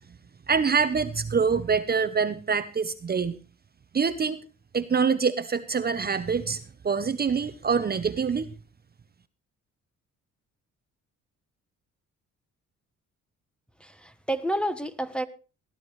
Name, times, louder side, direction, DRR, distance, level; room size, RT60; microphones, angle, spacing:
voice 1, 0.5-3.4 3.9-4.4 4.7-8.5, right 5 dB, 30° right, 0.8 m, -25 dB
voice 2, 13.8-15.2, right 1 dB, 5° left, 1.1 m, -29 dB
19.0 x 12.0 x 3.2 m
cardioid pair, 90°, 30 cm